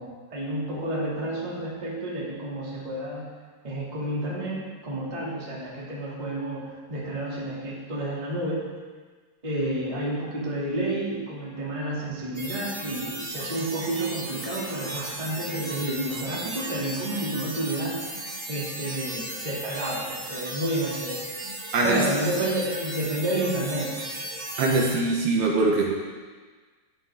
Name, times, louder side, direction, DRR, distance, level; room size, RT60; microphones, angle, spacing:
voice 1, 0.0-3.3 3.6-8.7 9.4-18.2 18.5-21.3 21.8-24.1, right 1 dB, 15° right, -6 dB, 2.1 m, -30 dB
sound 1, 12.3-24.9, right 1 dB, 30° right, 3.8 m, -36 dB
voice 2, 21.7-22.1 24.6-25.9, right 2 dB, 70° right, -2 dB, 3.1 m, -22 dB
15.0 x 11.0 x 3.8 m, 1.4 s
omnidirectional pair, 5.1 m